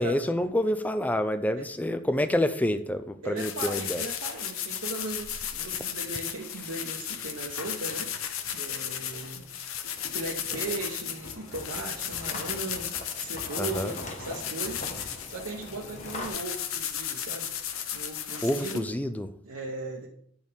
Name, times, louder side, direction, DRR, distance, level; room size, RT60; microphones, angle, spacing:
voice 1, 0.0-4.0 13.5-13.9 18.4-19.3, left 1 dB, 10° left, 10 dB, 0.4 m, -27 dB
voice 2, 3.2-8.1 8.5-9.5 10.1-14.8 15.3-17.5 17.9-18.8 19.4-20.1, right 3 dB, 90° right, -2 dB, 0.9 m, -37 dB
sound 1, 3.4-18.8, left 9 dB, 85° left, 0.7 m, -35 dB
sound 2, 9.8-16.3, left 2 dB, 35° left, 1.2 m, -43 dB
sound 3, 11.2-15.3, left 2 dB, 55° left, 2.0 m, -47 dB
8.7 x 6.3 x 3.5 m, 0.66 s
head